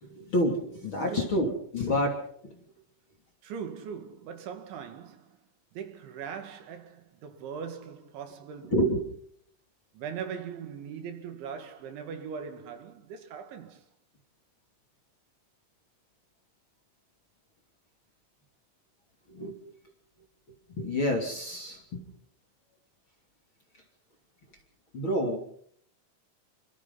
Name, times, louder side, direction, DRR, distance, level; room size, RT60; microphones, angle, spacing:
voice 1, 0.0-2.6 8.7-9.0 19.3-19.6 20.7-22.0 24.9-25.4, equal, 30° left, 3.1 m, -28 dB
voice 2, 3.4-5.4 5.7-8.9 9.9-13.9, right 7 dB, 70° right, 4.4 m, -40 dB
28.5 x 26.0 x 4.1 m
omnidirectional pair, 5.6 m